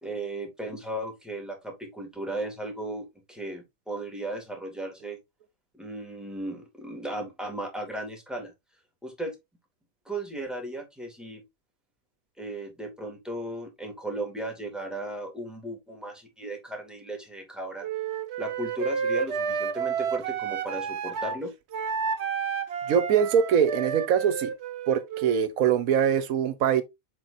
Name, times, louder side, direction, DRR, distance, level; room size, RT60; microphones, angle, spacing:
voice 1, 0.0-5.2 5.7-8.5 9.0-9.4 10.1-11.4 12.4-17.9 18.4-21.5, right 1 dB, ahead, 2.4 m, -36 dB
Wind instrument woodwind instrument, 17.8-21.4 21.7-25.5, right 6 dB, 60° right, 1.0 m, -31 dB
voice 2, 22.9-24.5 24.9-26.8, right 8 dB, 90° right, 1.3 m, -23 dB
7.5 x 5.3 x 2.7 m
omnidirectional pair, 1.4 m